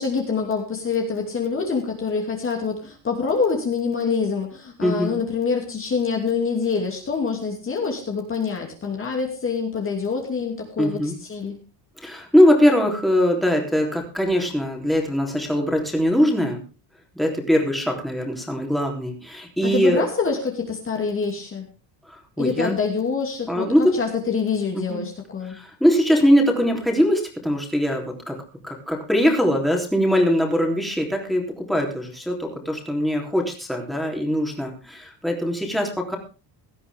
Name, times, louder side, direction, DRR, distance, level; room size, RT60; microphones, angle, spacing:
voice 1, 0.0-11.5 19.6-21.6 22.4-25.6, left 5 dB, 30° left, 1 dB, 2.7 m, -26 dB
voice 2, 4.8-5.1 10.8-11.1 12.0-16.6 17.1-20.0 22.1-22.7 23.5-24.0 24.7-25.0 25.5-28.4 28.6-36.2, equal, ahead, 0 dB, 3.4 m, -21 dB
17.5 x 12.5 x 3.6 m, 0.33 s
cardioid pair, 145°, 44 cm